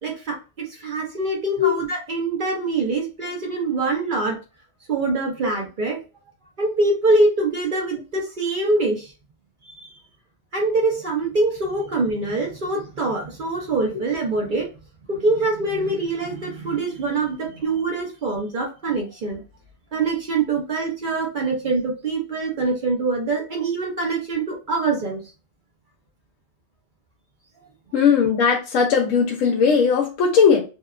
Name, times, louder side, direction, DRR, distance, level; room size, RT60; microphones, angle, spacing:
voice 1, 0.0-4.4 4.9-6.0 6.6-9.1 9.6-9.9 10.5-14.7 15.1-19.4 19.9-25.2, right 3 dB, 50° right, 0 dB, 0.7 m, -24 dB
voice 2, 27.9-30.6, left 6 dB, 90° left, 0 dB, 1.0 m, -18 dB
2.7 x 2.2 x 2.3 m, 0.32 s
omnidirectional pair, 1.3 m